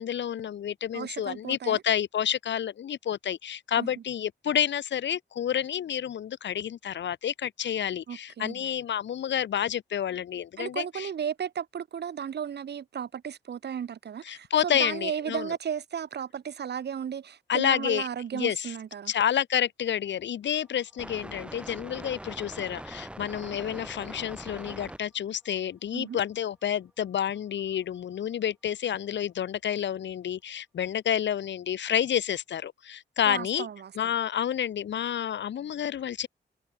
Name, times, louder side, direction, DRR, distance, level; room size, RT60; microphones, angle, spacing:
voice 1, 0.0-11.1 14.2-15.5 17.5-18.1 18.3-18.7 19.1-33.7 33.9-36.3, left 9 dB, 75° left, 1.1 m, -29 dB
voice 2, 0.9-1.8 3.8-3.9 8.1-8.6 10.6-19.1 25.9-26.2 33.3-34.1, right 8 dB, 65° right, 1.7 m, -34 dB
sound 1, 20.5-25.0, right 1 dB, 5° right, 4.0 m, -42 dB
wide cardioid pair, 145°, 19 cm